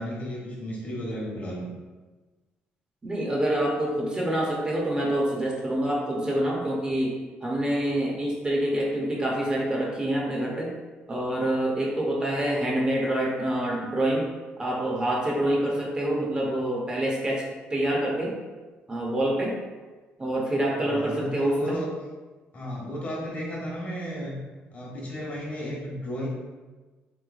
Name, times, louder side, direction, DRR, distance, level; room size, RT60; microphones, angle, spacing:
voice 1, 0.0-1.7 20.7-21.9 22.5-24.4 24.7-26.3, equal, 45° left, -4 dB, 1.1 m, -34 dB
voice 2, 3.0-7.2 7.4-10.7 11.1-14.3 14.6-17.4 17.7-18.4 18.9-19.6 20.2-21.8, right 1 dB, 20° right, -2 dB, 0.7 m, -26 dB
3.1 x 3.1 x 2.4 m, 1.3 s
cardioid pair, 95°, 4 cm